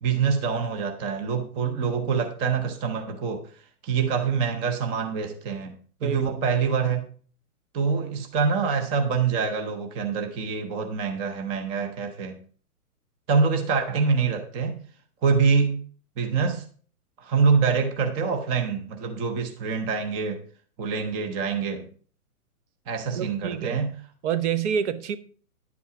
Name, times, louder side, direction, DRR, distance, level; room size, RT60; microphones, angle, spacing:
voice 1, 0.0-5.7 6.0-7.1 7.7-12.4 13.3-14.8 15.2-15.8 16.2-16.7 17.2-20.4 20.8-21.9 22.9-23.9, right 5 dB, 10° right, 0.6 m, -25 dB
voice 2, 23.2-23.8 24.2-25.2, right 8 dB, 50° right, 1.1 m, -27 dB
10.5 x 8.5 x 4.7 m
hypercardioid pair, 145°, 45 cm